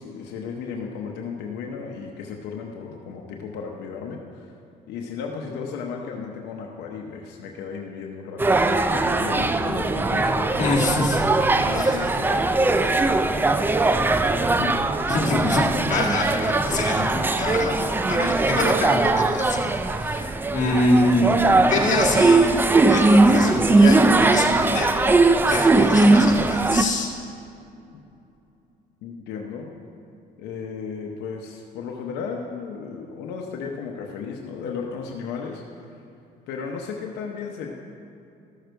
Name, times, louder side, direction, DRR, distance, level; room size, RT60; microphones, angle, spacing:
voice 1, 0.0-4.5 4.9-10.7 11.6-13.2 13.9-14.8 29.0-29.7 30.4-36.0 36.5-37.7, left 5 dB, 90° left, 1 dB, 0.9 m, -34 dB
sound 1, 8.4-26.8, right 2 dB, 10° right, 0.4 m, -20 dB
voice 2, 10.6-11.2 11.7-12.0 15.1-19.6 20.0-21.4 21.7-25.0 25.5-27.1, left 2 dB, 45° left, -2 dB, 1.8 m, -25 dB
13.5 x 6.6 x 4.5 m, 2.7 s
cardioid pair, 110°, 17 cm